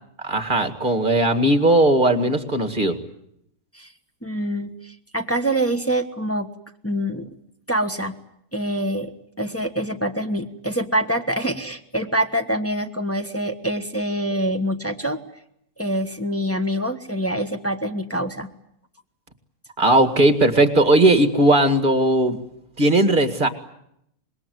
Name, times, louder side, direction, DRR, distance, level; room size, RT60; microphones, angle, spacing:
voice 1, 0.2-3.0 19.8-22.4 22.8-23.5, right 1 dB, 30° right, 8 dB, 2.1 m, -17 dB
voice 2, 4.2-6.5 6.8-7.3 7.7-8.2 8.5-9.1 9.4-15.2 15.8-18.5, right 1 dB, 10° left, 4 dB, 1.2 m, -25 dB
26.0 x 21.5 x 9.5 m, 0.76 s
omnidirectional pair, 1.7 m